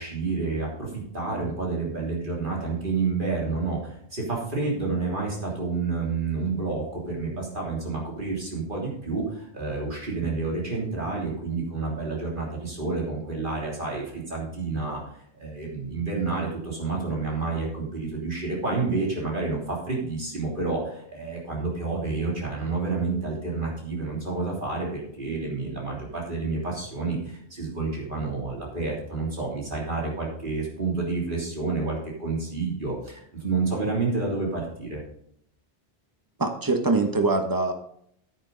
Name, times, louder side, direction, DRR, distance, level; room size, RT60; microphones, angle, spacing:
voice 1, 0.0-15.0 15.4-35.0, right 3 dB, 50° right, -3 dB, 3.4 m, -29 dB
voice 2, 36.4-37.7, right 3 dB, 20° right, 5 dB, 1.2 m, -23 dB
9.8 x 9.5 x 4.0 m, 0.68 s
omnidirectional pair, 1.1 m